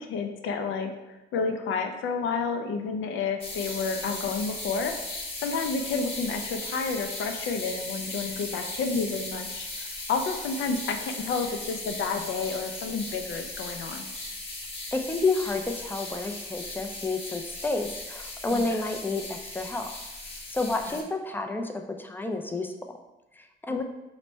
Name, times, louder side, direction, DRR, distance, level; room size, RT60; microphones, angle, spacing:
voice 1, 0.0-4.9 5.4-14.1 18.5-18.8 20.9-21.0 23.7-23.8, left 4 dB, 80° left, 6 dB, 0.5 m, -30 dB
sound 1, 3.4-21.0, left 2 dB, 30° left, 1.1 m, -37 dB
voice 2, 14.9-19.9 20.5-22.7 23.3-23.8, left 3 dB, 10° left, 4 dB, 0.4 m, -30 dB
4.0 x 2.1 x 4.4 m, 1.0 s
cardioid pair, 90°, 20 cm